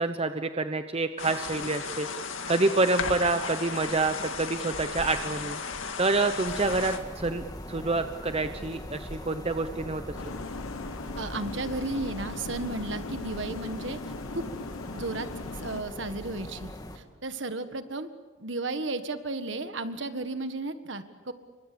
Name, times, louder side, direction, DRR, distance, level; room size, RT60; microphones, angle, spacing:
voice 1, 0.0-2.1 2.5-5.6 6.0-10.0, right 3 dB, 30° right, 8 dB, 0.8 m, -27 dB
sound 1, 1.2-7.0, left 5 dB, 70° left, 2.2 m, -35 dB
sound 2, 6.4-17.0, left 1 dB, 20° left, 1.9 m, -41 dB
sound 3, 10.1-15.8, left 3 dB, 85° left, 0.9 m, -39 dB
voice 2, 11.2-14.0 14.3-14.4 14.9-18.1 18.4-21.3, right 2 dB, 60° right, 9 dB, 1.7 m, -34 dB
29.0 x 25.0 x 7.0 m, 1.3 s
head